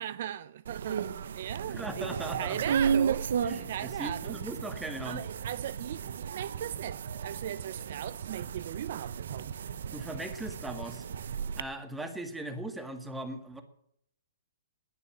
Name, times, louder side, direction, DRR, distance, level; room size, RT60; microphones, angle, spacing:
voice 1, 0.0-3.3 3.7-4.4 5.0-9.5, right 11 dB, 50° right, 0.5 m, -38 dB
sound 1, 0.7-11.6, right 7 dB, 65° right, 1.0 m, -34 dB
voice 2, 1.6-2.8 3.4-5.2 9.9-11.0 11.6-13.6, right 1 dB, 5° right, 1.8 m, -39 dB
20.0 x 7.0 x 8.7 m
hypercardioid pair, 155°, 0 cm